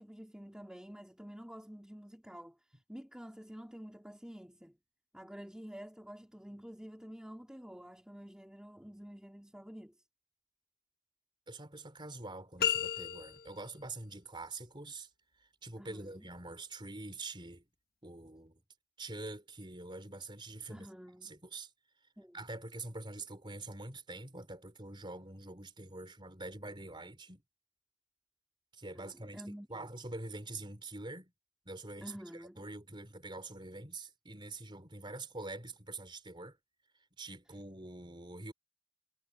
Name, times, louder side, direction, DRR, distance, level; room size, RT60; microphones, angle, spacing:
voice 1, 0.0-4.8 5.1-9.9 15.8-16.3 20.7-21.3 22.2-22.4 28.9-29.9 32.0-32.6, equal, 5° right, 2.4 m, -49 dB
voice 2, 11.5-15.1 15.6-17.6 18.0-18.6 19.0-20.9 21.2-21.7 22.3-27.4 28.7-29.4 29.7-31.3 31.6-36.6 37.2-38.5, right 2 dB, 20° right, 4.4 m, -45 dB
sound 1, 12.6-13.7, left 9 dB, 45° left, 1.6 m, -33 dB
head